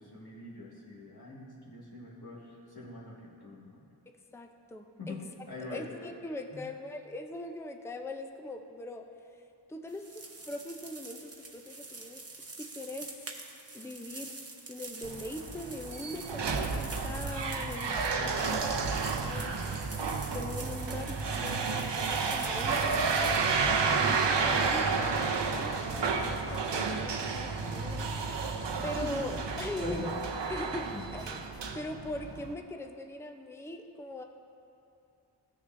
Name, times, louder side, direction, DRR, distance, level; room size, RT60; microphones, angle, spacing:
voice 1, 0.0-3.8 5.0-5.2 5.5-5.9 6.5-6.6 29.1-29.2 29.8-30.1 30.8-31.0, left 2 dB, 60° left, -7 dB, 2.0 m, -43 dB
voice 2, 4.3-5.2 5.7-9.1 9.3-9.4 9.7-12.2 12.6-13.3 13.7-14.4 14.7-19.6 20.3-23.3 23.9-28.5 28.8-30.1 30.5-30.9 31.1-31.4 31.7-34.2, left 2 dB, 5° left, 5 dB, 0.5 m, -41 dB
sound 1, 9.9-23.6, right 3 dB, 35° right, 0.8 m, -46 dB
sound 2, 15.0-32.5, right 4 dB, 80° right, 0.7 m, -31 dB
16.0 x 6.5 x 2.6 m, 2.7 s
wide cardioid pair, 60°, 42 cm